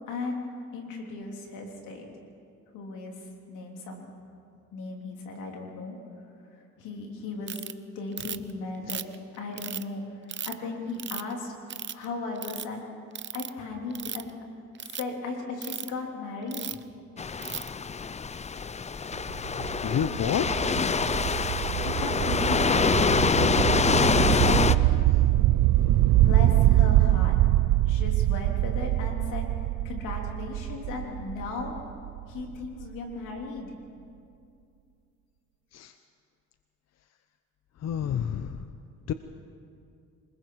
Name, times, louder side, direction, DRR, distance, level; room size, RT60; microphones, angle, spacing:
voice 1, 0.1-0.4 0.7-2.1 2.7-4.1 4.7-6.0 6.8-7.6 7.9-9.0 9.3-11.5 11.9-12.8 13.3-14.3 14.8-16.8 21.8-22.9 23.3-23.8 24.3-25.0 26.2-27.4 27.9-31.7 32.3-33.7, left 3 dB, 90° left, 1 dB, 3.3 m, -36 dB
Ratchet pawl, 7.5-7.7 8.2-8.5 8.9-9.8 10.3-10.5 11.0-11.3 11.7-12.0 12.4-12.6 13.1-13.5 13.9-14.3 14.7-15.0 15.6-15.9 16.5-16.8 17.4-17.7, right 8 dB, 40° right, 0.7 m, -35 dB
sound 1, 17.2-24.8, left 5 dB, 20° left, 0.5 m, -25 dB
sound 2, 19.1-32.9, right 15 dB, 75° right, 0.5 m, -24 dB
voice 2, 19.8-20.5 35.7-35.9 37.8-38.7 39.1-39.2, left 9 dB, 60° left, 9 dB, 0.8 m, -28 dB
27.5 x 20.5 x 4.8 m, 2.4 s
cardioid pair, 90°, 30 cm